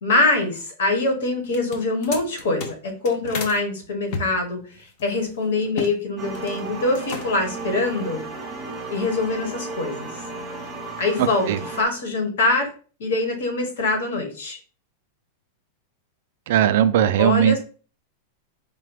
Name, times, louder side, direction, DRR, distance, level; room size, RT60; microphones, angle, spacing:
voice 1, 0.0-8.2 8.9-10.1 11.0-12.7 13.0-14.6 17.2-17.6, left 2 dB, 85° left, 3 dB, 1.4 m, -24 dB
sound 1, 1.4-3.6 4.1-6.0 6.2-6.6 6.9-7.5, left 4 dB, 40° left, 0.6 m, -33 dB
sound 2, 6.2-11.8, right 3 dB, 10° right, 0.7 m, -34 dB
voice 2, 16.5-17.6, right 10 dB, 55° right, 12 dB, 0.3 m, -18 dB
4.8 x 2.2 x 3.2 m, 0.39 s
supercardioid pair, 175°, 0 cm